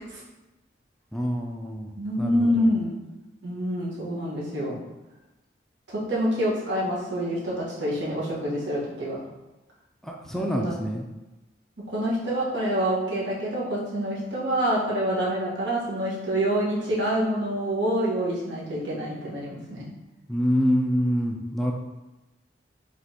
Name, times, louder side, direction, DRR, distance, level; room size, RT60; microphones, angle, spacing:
voice 1, 1.1-1.9 2.2-2.7 10.0-11.0 20.3-21.7, equal, ahead, 0 dB, 0.3 m, -26 dB
voice 2, 2.0-3.0 3.4-4.8 5.9-9.2 10.3-10.8 11.9-19.8, equal, 90° right, -6 dB, 1.4 m, -27 dB
5.0 x 3.4 x 2.8 m, 1.0 s
head